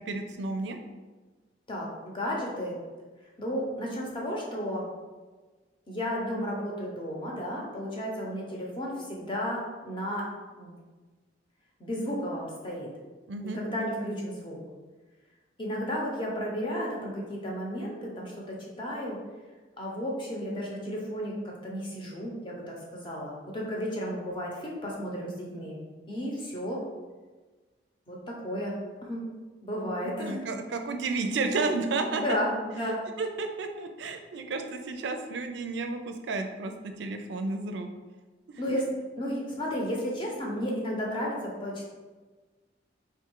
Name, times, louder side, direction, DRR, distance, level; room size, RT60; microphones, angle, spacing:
voice 1, 0.1-0.8 13.3-13.6 30.0-32.2 32.9-37.9 38.5-38.6, right 3 dB, 70° right, 6 dB, 0.4 m, -32 dB
voice 2, 1.7-2.8 3.4-4.9 5.9-10.3 10.6-10.7 11.8-12.9 13.4-14.6 15.6-19.2 19.8-25.8 26.1-26.8 28.1-29.2 29.6-30.4 32.1-33.0 38.6-38.8 39.2-41.9, equal, 25° left, -3 dB, 0.8 m, -33 dB
3.5 x 2.4 x 4.4 m, 1.3 s
head